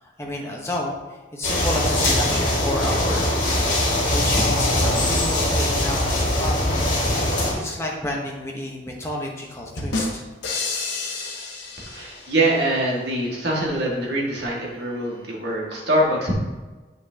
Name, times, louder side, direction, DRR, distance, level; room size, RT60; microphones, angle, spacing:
voice 1, 0.0-1.0 1.3-3.4 4.1-6.7 7.0-10.2, left 1 dB, 15° left, -1 dB, 1.1 m, -30 dB
sound 1, 1.4-7.5, left 1 dB, 40° left, 2.1 m, -21 dB
sound 2, 9.8-12.6, left 3 dB, 85° left, 1.4 m, -30 dB
voice 2, 11.8-16.3, right 1 dB, 70° right, -3 dB, 1.9 m, -24 dB
8.5 x 5.7 x 2.9 m, 1.2 s
head